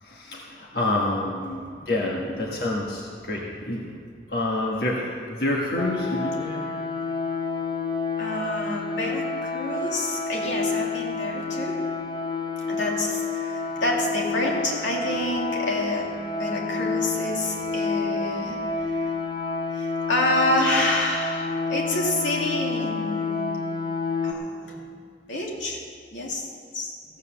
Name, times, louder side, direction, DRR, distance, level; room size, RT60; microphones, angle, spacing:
voice 1, 0.0-1.4 1.9-3.9 4.3-6.6, left 2 dB, 55° left, -3 dB, 1.4 m, -27 dB
voice 2, 2.0-2.6 3.7-3.8 8.2-11.8 12.6-16.1 16.4-19.3 19.7-23.6 24.2-24.8 25.3-25.8 26.1-26.5 26.7-26.9, left 1 dB, 85° left, -2 dB, 2.4 m, -28 dB
sound 1, 5.8-24.3, left 4 dB, 25° left, 0.7 m, -29 dB
15.0 x 8.2 x 6.8 m, 2.2 s
head